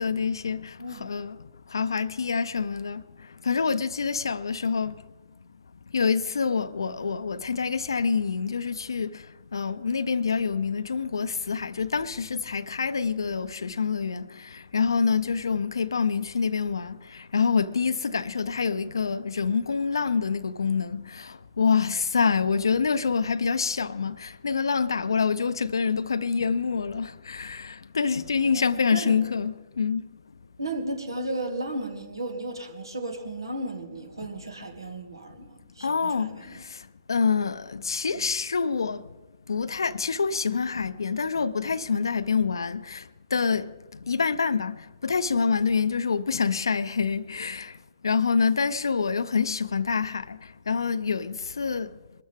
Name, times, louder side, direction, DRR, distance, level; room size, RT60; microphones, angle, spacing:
voice 1, 0.0-1.4 1.7-3.0 3.4-5.0 5.9-9.2 9.5-30.0 34.2-34.3 35.8-36.8 37.1-39.0 39.5-43.0 43.3-43.7 44.1-47.7 48.0-50.4 50.7-51.9, left 5 dB, 70° left, 0.6 m, -26 dB
voice 2, 28.4-29.2 30.6-36.6, right 1 dB, 75° right, 2.3 m, -34 dB
22.5 x 13.5 x 3.6 m
figure-of-eight pair, 120°, 2 cm